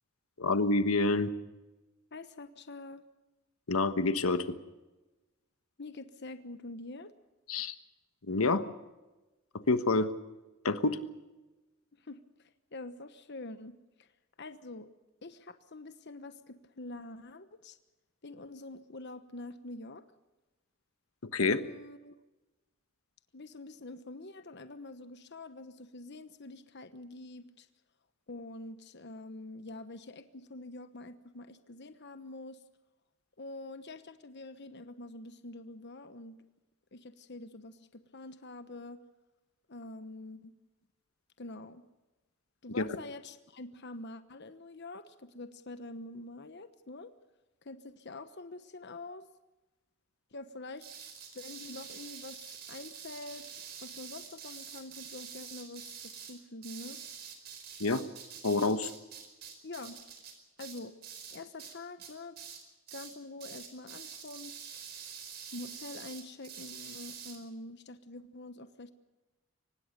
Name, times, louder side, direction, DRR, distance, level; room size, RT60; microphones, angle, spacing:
voice 1, 0.4-1.3 3.7-4.4 7.5-7.7 8.3-8.6 9.7-10.1 10.6-11.0 21.3-21.6 42.7-42.8 57.8-58.0 58.4-58.9, left 3 dB, 90° left, 10 dB, 1.4 m, -27 dB
voice 2, 2.1-3.0 5.8-7.1 12.0-13.7 14.0-14.1 14.4-14.9 15.2-17.8 18.2-20.0 21.4-22.1 23.3-27.7 28.3-32.6 33.4-36.4 36.9-39.0 39.7-40.5 41.4-41.8 42.6-47.1 47.6-49.2 50.3-50.9 51.3-53.5 53.8-57.0 59.6-60.0 60.6-61.0 61.3-62.4 62.9-64.8 65.5-68.9, left 2 dB, 55° left, 10 dB, 1.2 m, -46 dB
sound 1, 50.8-61.7 62.0-62.6 62.9-63.1 63.4-67.4, right 7 dB, 50° right, 4.8 m, -46 dB
24.5 x 19.5 x 6.8 m, 1.1 s
head